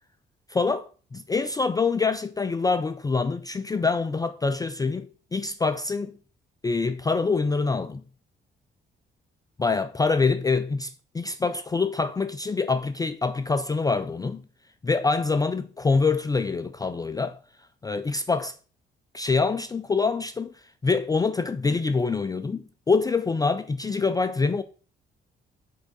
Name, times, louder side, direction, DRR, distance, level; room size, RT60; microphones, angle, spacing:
voice 1, 0.5-6.2 6.6-8.0 9.6-14.4 14.8-17.4 17.8-18.6 19.1-20.5 20.8-24.6, left 4 dB, 20° left, 0.4 m, -25 dB
8.4 x 3.7 x 3.7 m
cardioid pair, 90°, 20 cm